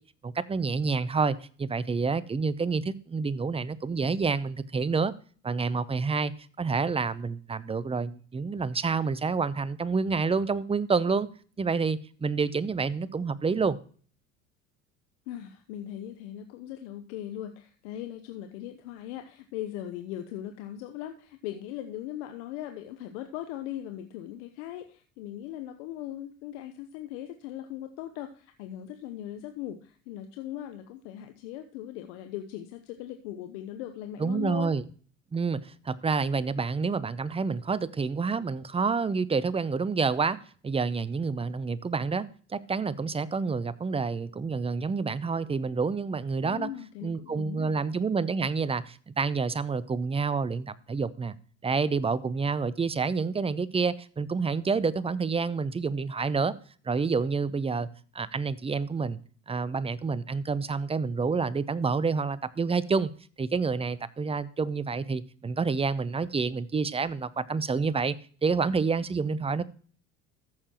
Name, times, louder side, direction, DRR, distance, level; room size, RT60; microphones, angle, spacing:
voice 1, 0.2-5.1 5.4-6.3 6.6-11.3 11.6-13.8 34.2-34.8 35.3-40.4 40.6-46.7 47.0-51.4 51.6-56.5 56.9-57.9 58.1-59.2 59.5-63.1 63.4-68.1 68.4-69.6, right 4 dB, 15° right, 0.6 m, -28 dB
voice 2, 15.3-34.7 46.4-47.7, left 12 dB, 70° left, 0.9 m, -39 dB
14.0 x 6.7 x 3.0 m
hypercardioid pair, 70°, 37 cm